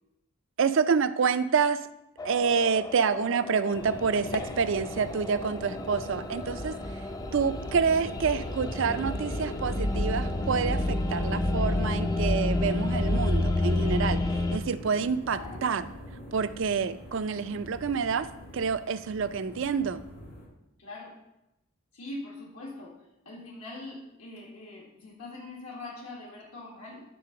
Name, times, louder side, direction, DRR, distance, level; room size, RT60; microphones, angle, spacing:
voice 1, 0.6-1.8 2.2-6.7 7.3-14.2 14.5-15.8 16.3-18.3 18.5-20.0, right 5 dB, 60° right, 12 dB, 0.4 m, -27 dB
sound 1, 2.2-14.6, left 2 dB, 15° left, 0.4 m, -30 dB
sound 2, 3.7-20.5, equal, 65° left, 2.7 m, -43 dB
voice 2, 15.3-15.6 20.8-21.2 21.9-23.0 23.3-27.0, left 2 dB, 80° left, -3 dB, 1.9 m, -42 dB
9.3 x 3.8 x 5.7 m, 0.88 s
head